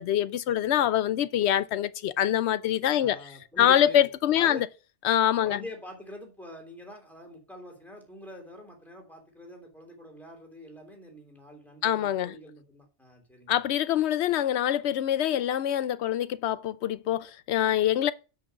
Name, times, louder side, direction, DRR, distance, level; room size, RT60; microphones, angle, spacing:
voice 1, 0.0-3.2 3.6-4.7 5.0-5.6 11.8-12.3 13.5-18.1, left 11 dB, 90° left, 0.9 m, -25 dB
voice 2, 2.9-4.6 5.4-13.6, left 1 dB, ahead, 3.3 m, -45 dB
6.5 x 6.2 x 6.8 m
omnidirectional pair, 1.1 m